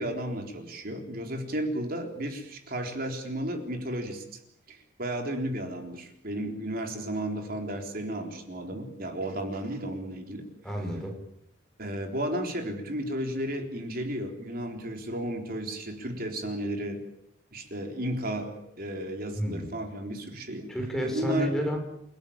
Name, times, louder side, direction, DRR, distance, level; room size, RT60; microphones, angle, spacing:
voice 1, 0.0-4.4 4.7-10.5 11.8-17.0 17.5-20.7 21.0-21.6, right 1 dB, 50° right, 4 dB, 3.8 m, -33 dB
voice 2, 10.6-11.1 19.3-19.7 20.7-21.8, equal, ahead, 2 dB, 5.3 m, -30 dB
29.5 x 16.0 x 8.8 m, 0.75 s
head